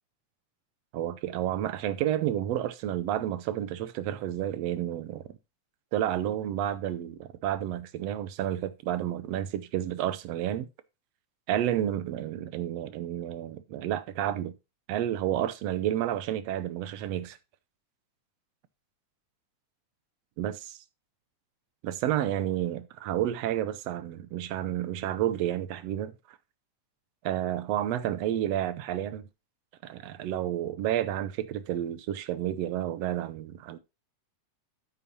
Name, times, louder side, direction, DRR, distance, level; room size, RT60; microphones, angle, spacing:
voice 1, 0.9-5.2 5.9-10.7 11.5-14.5 14.9-17.4 20.4-20.8 21.8-26.1 27.2-29.3 29.8-33.8, right 11 dB, 75° right, 1.7 m, -30 dB
9.1 x 8.7 x 2.9 m
omnidirectional pair, 3.4 m